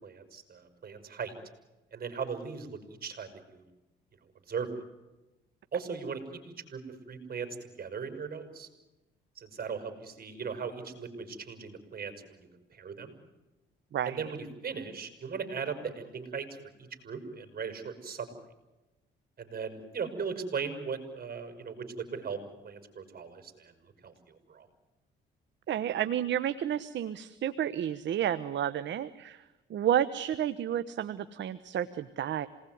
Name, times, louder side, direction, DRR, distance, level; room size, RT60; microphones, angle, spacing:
voice 1, 0.0-1.4 1.9-3.6 4.5-4.7 5.7-6.8 7.1-8.7 9.4-13.2 14.0-16.6 17.0-18.3 19.4-24.7, right 6 dB, 50° right, 9 dB, 6.4 m, -38 dB
voice 2, 13.9-14.3 25.7-29.4 29.7-32.5, right 10 dB, 65° right, 12 dB, 1.2 m, -31 dB
27.5 x 20.0 x 9.5 m, 1.0 s
cardioid pair, 90°, 20 cm